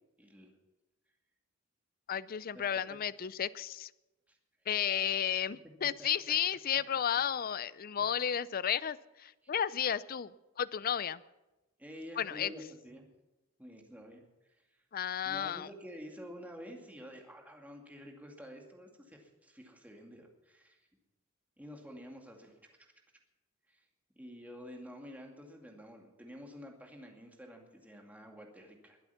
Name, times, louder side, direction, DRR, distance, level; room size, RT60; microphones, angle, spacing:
voice 1, 0.2-0.5 2.5-3.0 4.3-4.4 6.0-6.1 11.8-13.0 13.6-14.2 15.2-20.8 21.6-22.9 23.7-23.8 24.2-29.0, equal, 10° right, 2 dB, 2.3 m, -49 dB
voice 2, 2.1-3.9 4.7-10.3 10.6-11.2 12.2-12.5 14.9-15.7, left 9 dB, 45° left, 18 dB, 0.5 m, -33 dB
21.5 x 8.1 x 7.1 m, 1.0 s
head